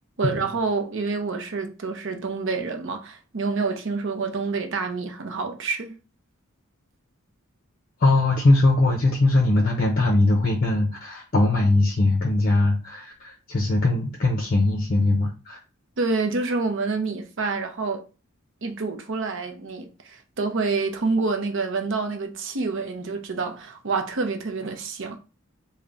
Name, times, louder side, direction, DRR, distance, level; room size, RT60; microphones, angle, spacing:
voice 1, 0.2-6.0 16.0-18.0 18.6-25.2, right 4 dB, 60° right, 0.6 m, -27 dB
voice 2, 8.0-15.6, left 2 dB, 45° left, 0.5 m, -21 dB
3.5 x 2.1 x 3.8 m
head